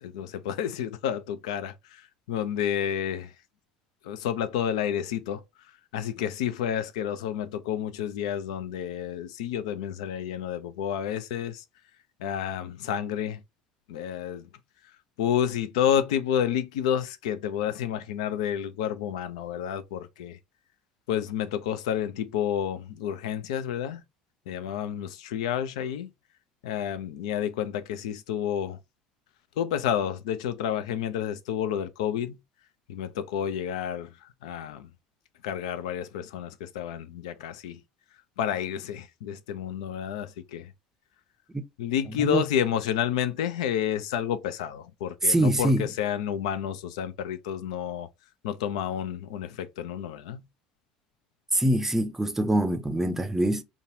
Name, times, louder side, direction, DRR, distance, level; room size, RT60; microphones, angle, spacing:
voice 1, 0.0-3.3 4.0-5.4 5.9-11.6 12.2-13.4 13.9-14.5 15.2-20.4 21.1-24.0 24.5-26.1 26.6-28.8 29.6-32.4 32.9-34.9 35.4-37.8 38.4-40.7 41.8-48.1 48.4-50.5, left 9 dB, 70° left, 0.5 m, -30 dB
voice 2, 45.3-45.9 51.5-53.6, right 1 dB, 10° right, 0.6 m, -24 dB
3.9 x 2.3 x 2.6 m
figure-of-eight pair, 65°, 4 cm